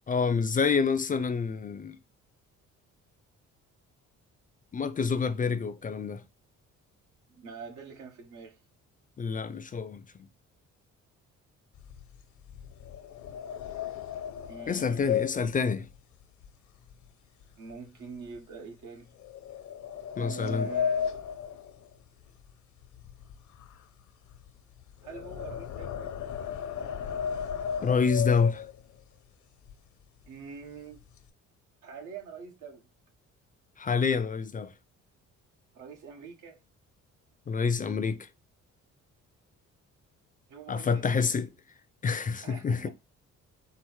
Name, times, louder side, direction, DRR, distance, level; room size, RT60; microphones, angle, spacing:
voice 1, 0.1-2.0 4.7-6.2 9.2-10.0 14.7-15.8 20.2-20.7 27.8-28.6 33.8-34.7 37.5-38.3 40.7-41.5 42.0-42.9, left 5 dB, 30° left, 0.4 m, -27 dB
voice 2, 7.3-8.6 14.5-15.6 17.6-19.1 20.2-21.1 25.0-26.1 30.2-31.0 31.8-32.8 35.7-36.6 40.5-41.1 42.4-42.9, right 5 dB, 85° right, 1.2 m, -44 dB
sound 1, 11.7-17.1 17.4-17.7 18.2-18.4 19.2-22.5 22.8-29.0 29.6-29.7 30.0-30.3 30.6-31.3, left 8 dB, 75° left, 0.7 m, -35 dB
4.6 x 2.0 x 4.5 m
cardioid pair, 90°, 30 cm